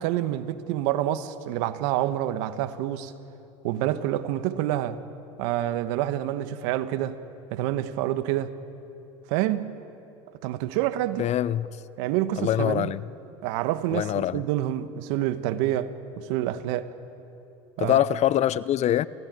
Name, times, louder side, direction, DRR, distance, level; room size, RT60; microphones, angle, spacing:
voice 1, 0.0-3.1 3.6-5.0 5.4-7.2 7.5-8.5 9.3-9.7 10.4-11.3 12.0-12.9 13.4-16.9 17.8-18.0, right 13 dB, 70° right, 1.3 m, -27 dB
voice 2, 11.2-11.8 12.4-13.1 13.9-14.4 17.8-19.1, left 12 dB, 45° left, 0.7 m, -24 dB
28.5 x 17.0 x 9.4 m
hypercardioid pair, 90°, 16 cm